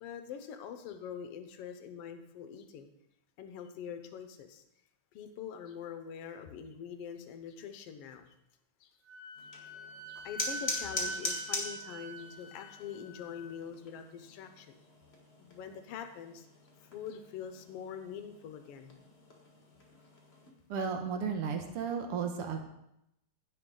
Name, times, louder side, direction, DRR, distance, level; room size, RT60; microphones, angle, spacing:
voice 1, 0.0-2.9 3.4-4.6 5.1-8.3 8.8-8.9 9.5-14.8 15.4-16.5 16.8-19.0, left 7 dB, 70° left, 7 dB, 1.5 m, -44 dB
Wind instrument woodwind instrument, 9.1-13.5, right 2 dB, 85° right, 2.7 m, -44 dB
sound 1, 9.3-20.5, left 2 dB, 30° left, 1.3 m, -43 dB
voice 2, 20.7-22.6, right 6 dB, 65° right, 5 dB, 1.6 m, -34 dB
16.0 x 5.9 x 3.9 m, 0.82 s
omnidirectional pair, 3.4 m